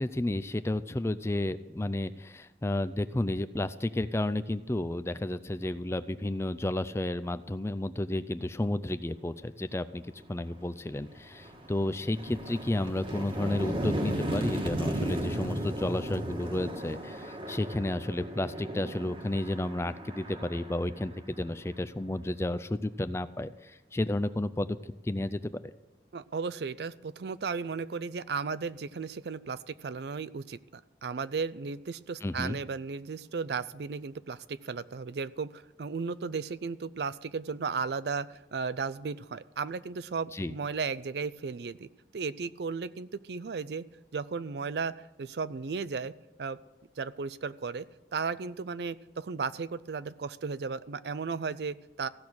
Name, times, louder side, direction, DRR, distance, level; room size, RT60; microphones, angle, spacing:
voice 1, 0.0-10.0 10.3-24.8 25.0-25.7 32.2-32.6 40.3-40.5, left 1 dB, 15° left, 14 dB, 0.4 m, -32 dB
sound 1, 10.4-10.5 11.0-21.7, right 1 dB, 30° right, 1.4 m, -35 dB
voice 2, 26.1-43.8 44.1-46.1 46.4-46.6 47.0-47.9 48.1-52.1, right 5 dB, 65° right, 16 dB, 0.5 m, -35 dB
15.5 x 6.2 x 8.6 m, 1.1 s
head